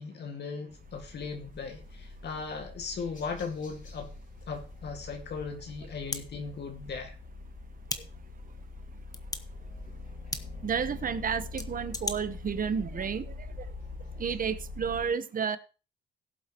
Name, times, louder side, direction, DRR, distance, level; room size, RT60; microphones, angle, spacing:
voice 1, 0.0-4.1 4.5-7.2, left 5 dB, 60° left, 3 dB, 2.1 m, -38 dB
sound 1, 0.7-15.0, left 3 dB, 40° left, 2.9 m, -44 dB
sound 2, 4.4-4.5 6.1-6.2 7.8-8.0 9.1-9.4 10.3-10.4 11.6-12.2, left 3 dB, 20° left, 1.0 m, -34 dB
voice 2, 10.6-13.2 14.2-15.6, right 6 dB, 45° right, 13 dB, 1.1 m, -31 dB
17.5 x 7.5 x 3.0 m, 0.34 s
cardioid pair, 90°, 20 cm